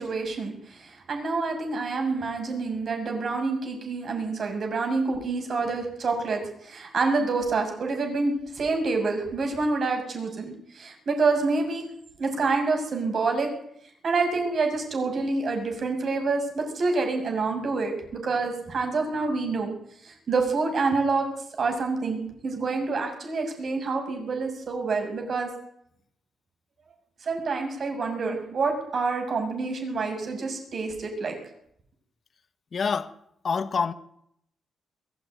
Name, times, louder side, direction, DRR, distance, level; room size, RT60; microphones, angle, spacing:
voice 1, 0.0-11.9 12.2-13.5 14.0-19.7 20.0-21.3 21.6-25.5 27.2-31.3, right 3 dB, 45° right, 6.7 m, -27 dB
voice 2, 32.7-33.1 33.4-33.9, left 5 dB, 40° left, 1.6 m, -26 dB
22.0 x 14.5 x 9.3 m
cardioid pair, 135°, 0 cm